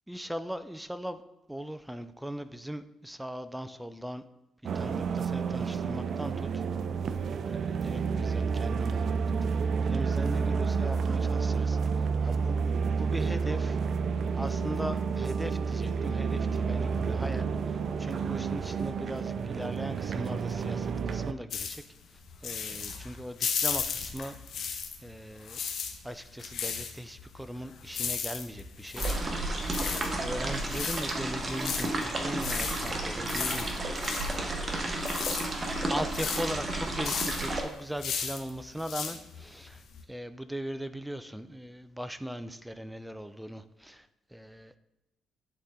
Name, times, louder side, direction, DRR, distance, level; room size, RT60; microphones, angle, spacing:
voice 1, 0.1-1.2 1.5-4.2 4.7-6.6 7.5-9.2 9.8-12.6 13.0-13.8 14.4-21.8 22.1-24.4 25.0-25.6 26.0-29.1 29.8-35.0 35.9-39.8 40.1-44.8, equal, 5° right, 11 dB, 0.5 m, -39 dB
sound 1, 4.6-21.3, right 5 dB, 55° right, 0.5 m, -30 dB
sound 2, 21.5-25.1 25.4-40.0, left 6 dB, 70° left, 1.1 m, -36 dB
sound 3, 29.0-37.6, right 2 dB, 30° right, 1.4 m, -32 dB
11.0 x 4.2 x 3.8 m, 0.97 s
cardioid pair, 90°, 0 cm